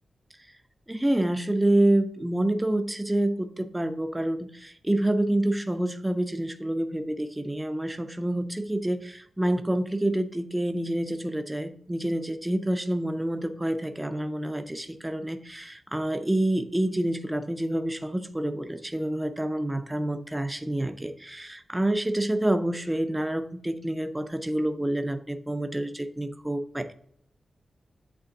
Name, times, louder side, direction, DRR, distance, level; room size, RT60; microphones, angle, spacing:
voice 1, 0.9-26.9, right 1 dB, 10° right, 9 dB, 0.4 m, -27 dB
8.2 x 3.6 x 3.8 m, 0.66 s
wide cardioid pair, 165°, 0 cm